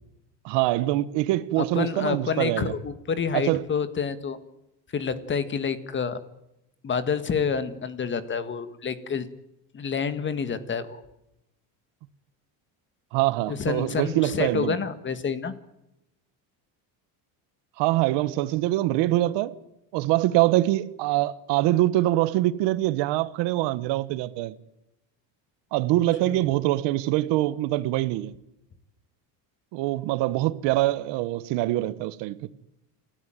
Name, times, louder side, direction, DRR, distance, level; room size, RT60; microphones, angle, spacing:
voice 1, 0.4-2.7 3.3-3.6 13.1-14.8 17.8-19.5 19.9-24.6 25.7-28.4 29.7-32.4, right 16 dB, 75° right, 1.4 m, -24 dB
voice 2, 1.8-4.4 4.9-6.2 6.8-9.3 9.7-11.0 13.5-15.5 26.2-26.4, left 6 dB, 25° left, 1.7 m, -28 dB
29.0 x 13.5 x 9.1 m
cardioid pair, 155°, 42 cm